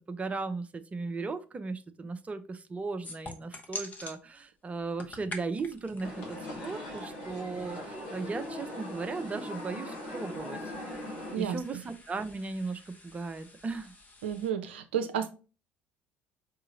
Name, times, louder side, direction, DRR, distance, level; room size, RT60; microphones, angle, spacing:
voice 1, 0.1-10.7 11.4-13.9, right 4 dB, 20° right, 9 dB, 0.6 m, -37 dB
sound 1, 3.0-4.2 4.8-14.5, left 2 dB, 25° left, 1.0 m, -48 dB
sound 2, 6.0-11.4, left 1 dB, 65° left, 1.3 m, -40 dB
voice 2, 11.3-11.8 14.2-15.3, right 8 dB, 75° right, 7 dB, 0.5 m, -32 dB
4.9 x 2.8 x 3.8 m, 0.33 s
figure-of-eight pair, 60°, 6 cm